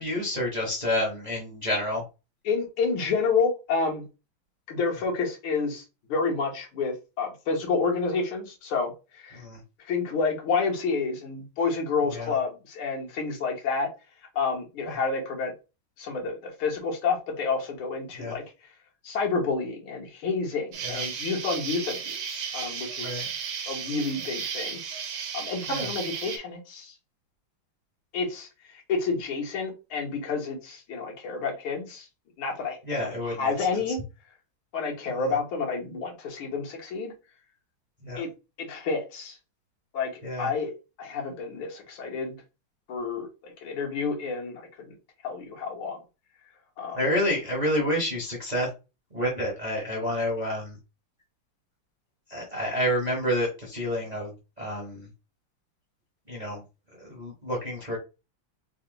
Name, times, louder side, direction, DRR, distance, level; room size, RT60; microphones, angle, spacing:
voice 1, 0.0-2.0 9.3-9.6 12.1-12.3 14.8-14.9 18.1-18.4 20.8-21.0 23.0-23.3 25.7-25.9 32.8-34.0 35.1-35.3 38.0-38.2 40.2-40.5 46.9-48.7 49.1-50.8 52.3-54.3 54.6-55.1 56.3-56.6 57.0-58.0, equal, 30° right, -2 dB, 0.7 m, -29 dB
voice 2, 2.5-4.1 4.7-5.8 6.1-9.4 9.8-13.9 14.4-15.5 16.0-18.4 19.0-23.3 23.7-24.8 25.3-26.9 28.1-32.1 32.4-34.0 34.7-37.1 38.2-38.3 38.6-39.4 39.9-40.7 41.0-42.4 42.9-44.9 45.2-46.0 46.8-47.0, left 4 dB, 75° left, 0 dB, 2.0 m, -29 dB
Insect, 20.7-26.4, right 7 dB, 65° right, 1.4 m, -34 dB
4.1 x 2.2 x 3.8 m, 0.29 s
omnidirectional pair, 2.3 m